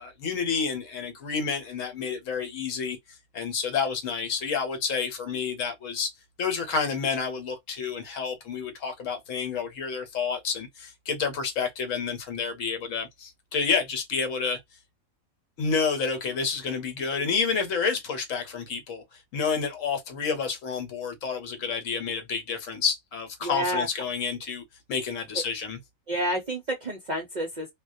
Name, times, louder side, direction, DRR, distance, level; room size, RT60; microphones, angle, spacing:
voice 1, 0.0-3.0 3.3-6.1 6.4-14.6 15.6-19.0 19.3-24.6 24.9-25.8, left 5 dB, 70° left, 1.1 m, -29 dB
voice 2, 23.4-23.9 26.1-27.7, equal, 50° right, 0.5 m, -29 dB
2.3 x 2.2 x 2.5 m
omnidirectional pair, 1.4 m